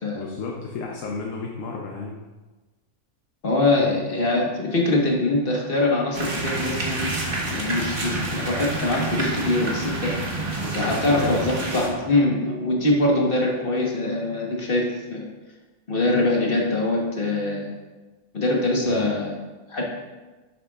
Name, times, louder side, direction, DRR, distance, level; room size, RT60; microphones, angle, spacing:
voice 1, 0.1-2.2 3.8-3.9 10.6-11.5 18.8-19.1, left 4 dB, 65° left, 0 dB, 1.1 m, -33 dB
voice 2, 3.4-7.1 7.5-10.1 10.7-15.2 15.9-17.8 18.3-19.4 19.7-19.8, left 2 dB, 40° left, -1 dB, 1.4 m, -23 dB
sound 1, 6.1-11.9, right 2 dB, 40° right, 1.4 m, -28 dB
11.5 x 6.7 x 2.4 m, 1.2 s
omnidirectional pair, 1.6 m